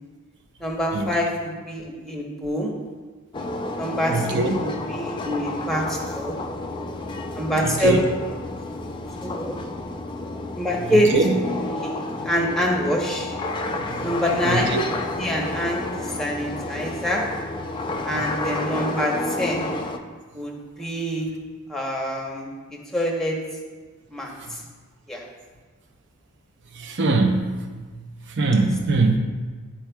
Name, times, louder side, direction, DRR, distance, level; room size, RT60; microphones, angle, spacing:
voice 1, 0.6-2.7 3.8-6.3 7.4-8.1 9.2-9.6 10.5-11.1 11.8-12.0 12.2-13.4 14.0-14.7 15.2-15.9 16.2-17.2 18.0-19.7 20.3-21.3 21.7-23.4 24.1-24.6 25.1-25.2, equal, ahead, -1 dB, 0.9 m, -25 dB
sound 1, 3.3-20.0, left 2 dB, 20° left, 0.3 m, -30 dB
voice 2, 4.1-4.5 7.8-8.0 11.1-11.4 14.5-14.8 26.8-27.5 28.4-29.2, right 3 dB, 55° right, 3 dB, 0.7 m, -21 dB
11.5 x 4.5 x 2.3 m, 1.4 s
head